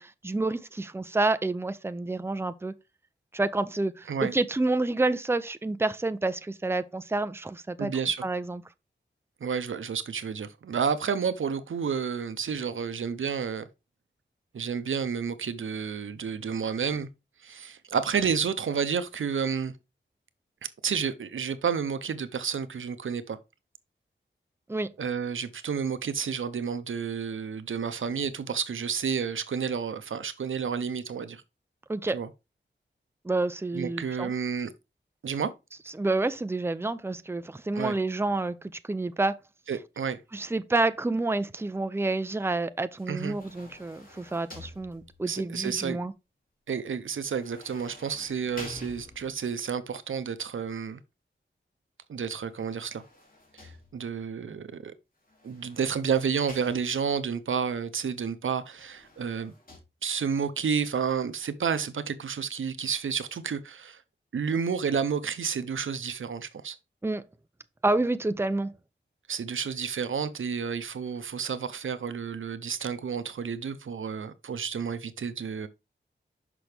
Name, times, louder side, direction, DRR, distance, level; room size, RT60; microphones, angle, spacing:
voice 1, 0.0-2.7 3.3-7.9 8.2-8.6 24.7-24.9 31.9-32.2 33.2-34.3 35.9-38.6 38.8-39.4 40.3-46.1 67.0-67.2 67.8-68.7, right 2 dB, 10° right, 0.5 m, -28 dB
voice 2, 7.8-8.2 9.4-13.7 14.5-17.1 17.4-19.7 20.8-23.4 25.0-31.4 32.1-32.3 33.7-34.7 35.2-35.5 37.8-38.0 39.7-40.2 43.1-43.4 45.3-46.0 46.7-51.0 52.1-53.0 53.5-54.9 55.4-59.5 60.0-64.0 64.3-66.8 69.3-75.7, right 6 dB, 90° right, 0.7 m, -30 dB
sound 1, 43.0-45.4 47.3-49.5 52.4-54.3 55.3-57.3 58.6-59.8, left 2 dB, 45° left, 2.5 m, -49 dB
6.1 x 5.8 x 3.3 m
wide cardioid pair, 75°, 20 cm